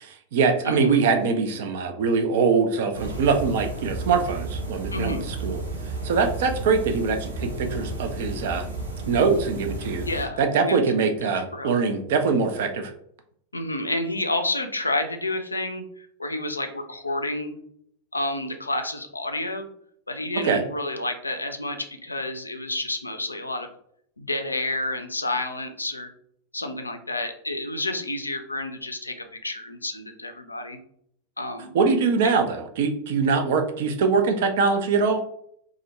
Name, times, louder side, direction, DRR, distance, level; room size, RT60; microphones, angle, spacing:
voice 1, 0.0-5.6 6.0-8.7 9.1-10.0 10.4-12.9 20.4-20.6 31.7-35.2, right 5 dB, 55° right, 6 dB, 0.4 m, -23 dB
voice 2, 0.6-1.0 4.9-5.3 10.1-10.8 11.4-11.7 13.5-17.5 18.1-19.7 20.1-23.7 24.2-26.1 26.5-30.8 31.4-31.7 32.2-32.4, left 2 dB, 80° left, 6 dB, 0.3 m, -30 dB
sound 1, 2.9-10.2, right 2 dB, 80° right, 0.7 m, -33 dB
2.3 x 2.1 x 2.9 m, 0.68 s
figure-of-eight pair, 90°, 0 cm